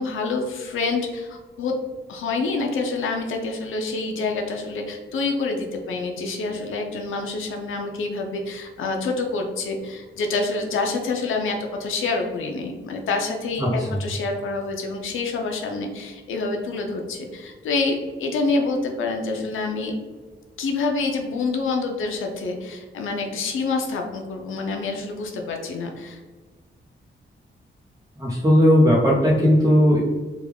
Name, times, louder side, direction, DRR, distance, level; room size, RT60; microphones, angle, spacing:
voice 1, 0.0-1.7 2.1-19.9 20.6-26.2, left 3 dB, 85° left, 2 dB, 0.5 m, -27 dB
voice 2, 13.6-14.0 28.2-30.0, equal, 20° right, -7 dB, 0.7 m, -17 dB
3.5 x 2.2 x 3.4 m, 1.3 s
wide cardioid pair, 130°, 20 cm